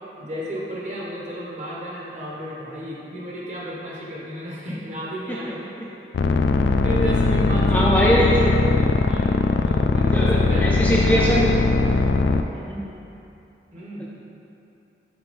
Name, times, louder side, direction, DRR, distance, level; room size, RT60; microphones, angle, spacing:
voice 1, 0.2-5.7 6.8-8.3 8.7-8.8 9.1-10.7 11.1-11.3 13.7-14.1, equal, 40° right, -5 dB, 1.3 m, -32 dB
sound 1, 6.1-12.4, left 3 dB, 70° left, 0.3 m, -20 dB
voice 2, 7.6-8.4 10.1-11.5 12.5-12.8, equal, 10° left, -5 dB, 0.5 m, -22 dB
6.0 x 4.5 x 5.2 m, 2.8 s
head